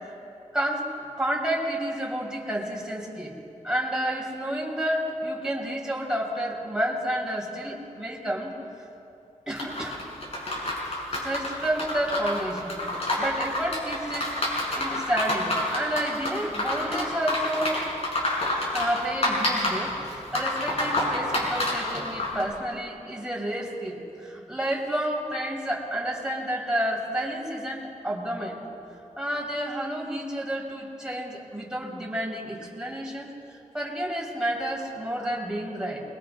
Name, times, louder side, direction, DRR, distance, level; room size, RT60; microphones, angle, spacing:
voice 1, 0.5-3.3 3.6-8.5 9.5-10.0 10.9-14.3 14.7-17.9 18.7-28.6 29.2-36.0, right 1 dB, 5° right, -3 dB, 5.3 m, -30 dB
sound 1, 9.6-22.4, left 1 dB, 55° left, 6.7 m, -28 dB
29.5 x 23.0 x 3.9 m, 2.7 s
wide cardioid pair, 80°, 13 cm